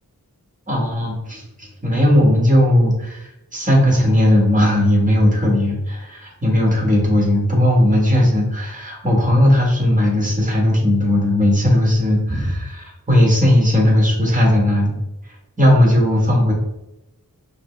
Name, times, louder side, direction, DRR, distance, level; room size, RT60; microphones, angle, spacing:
voice 1, 0.7-14.9 15.6-16.5, left 1 dB, 20° right, -2 dB, 1.4 m, -17 dB
5.6 x 2.1 x 3.2 m, 0.91 s
wide cardioid pair, 60°, 36 cm